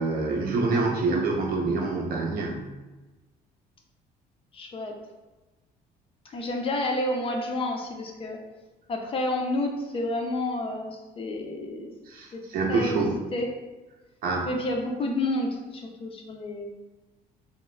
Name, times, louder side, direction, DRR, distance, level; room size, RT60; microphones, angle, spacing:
voice 1, 0.0-2.7 12.1-13.1 14.2-14.5, right 3 dB, 60° right, 0 dB, 0.6 m, -26 dB
voice 2, 4.5-4.9 6.3-8.4 8.9-11.9 12.3-12.4 12.7-13.5 14.5-16.7, left 1 dB, 35° left, 3 dB, 0.4 m, -30 dB
2.2 x 2.0 x 3.1 m, 1.1 s
cardioid pair, 110°, 17 cm